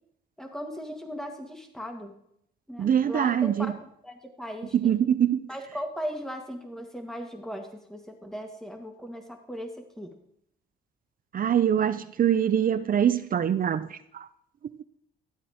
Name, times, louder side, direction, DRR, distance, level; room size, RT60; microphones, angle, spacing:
voice 1, 0.4-2.1 2.7-4.9 5.5-10.1, equal, ahead, 1.8 m, -38 dB
voice 2, 2.8-3.7 4.7-5.4 11.3-14.3, right 9 dB, 45° right, 0.5 m, -24 dB
13.5 x 8.3 x 3.6 m
cardioid pair, 90°, 20 cm